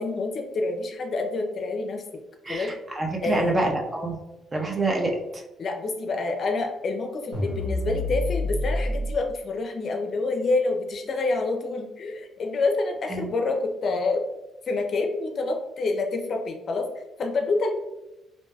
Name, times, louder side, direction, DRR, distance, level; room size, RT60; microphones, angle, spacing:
voice 1, 0.0-2.0 2.5-2.7 3.2-3.6 5.6-14.2 14.7-16.9 17.2-17.7, left 3 dB, 55° left, 3 dB, 0.5 m, -27 dB
voice 2, 2.4-4.2 4.5-5.4 13.1-13.2, right 2 dB, 25° right, 1 dB, 0.6 m, -26 dB
sound 1, 7.3-9.2, left 1 dB, 75° right, 1.1 m, -27 dB
2.6 x 2.1 x 3.3 m, 0.97 s
cardioid pair, 90°, 0 cm